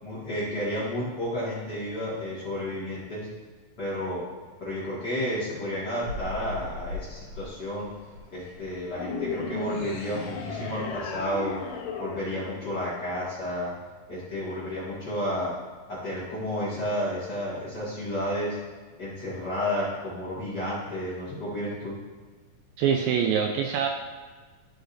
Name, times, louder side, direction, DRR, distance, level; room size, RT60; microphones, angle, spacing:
voice 1, 0.0-3.3 3.8-4.2 4.6-7.9 8.3-11.6 12.0-13.7 14.1-15.5 15.9-18.6 19.0-22.0, equal, 35° left, -9 dB, 2.0 m, -31 dB
sound 1, 6.0-11.8, left 2 dB, 55° right, 2.6 m, -42 dB
sound 2, 8.9-13.4, left 5 dB, 80° left, 1.6 m, -35 dB
voice 2, 22.8-23.9, right 7 dB, 80° right, 3 dB, 2.1 m, -24 dB
13.0 x 5.1 x 2.7 m, 1.4 s
omnidirectional pair, 4.3 m